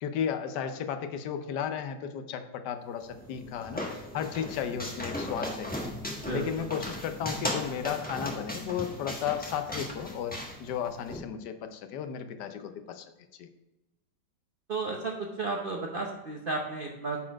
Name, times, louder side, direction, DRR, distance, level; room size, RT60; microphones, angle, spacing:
voice 1, 0.0-3.8 4.1-5.8 6.3-13.0 13.4-13.5, left 8 dB, 65° left, 8 dB, 1.2 m, -34 dB
sound 1, 3.0-11.2, left 1 dB, 5° left, 1.0 m, -37 dB
voice 2, 6.1-6.7 14.7-17.2, right 3 dB, 65° right, 0 dB, 0.5 m, -33 dB
9.9 x 4.3 x 4.5 m, 1.0 s
omnidirectional pair, 2.2 m